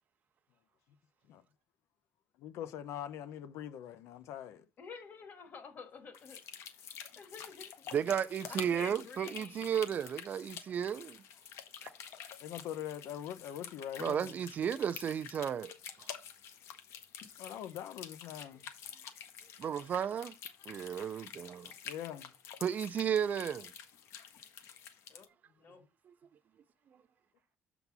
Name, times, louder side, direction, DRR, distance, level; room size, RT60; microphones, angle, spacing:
voice 1, 2.4-4.6 12.4-14.3 17.4-18.7 21.8-22.3, left 10 dB, 90° left, 0.8 m, -42 dB
voice 2, 4.8-6.4 7.2-7.9 8.5-9.7 25.1-25.3 25.6-25.8, left 5 dB, 40° left, 1.4 m, -49 dB
sound 1, 6.1-25.3, left 8 dB, 70° left, 1.1 m, -49 dB
voice 3, 7.9-11.2 14.0-15.7 16.0-16.1 19.6-20.3 20.7-21.7 22.6-23.7 26.1-26.2, right 8 dB, 35° right, 0.4 m, -33 dB
7.0 x 4.0 x 5.9 m
cardioid pair, 180°, 5 cm